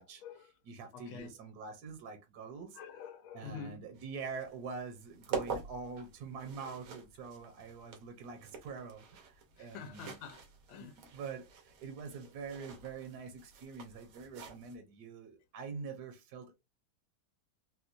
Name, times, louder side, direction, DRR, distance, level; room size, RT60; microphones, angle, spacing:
voice 1, 0.0-0.5 0.9-1.3 2.7-3.8 9.6-11.0, left 6 dB, 85° left, 1.5 m, -47 dB
voice 2, 0.7-2.8 3.3-10.2 10.8-16.5, right 5 dB, 65° right, 1.1 m, -45 dB
sound 1, 3.9-14.8, right 6 dB, 90° right, 1.8 m, -46 dB
4.3 x 2.2 x 2.5 m
omnidirectional pair, 2.2 m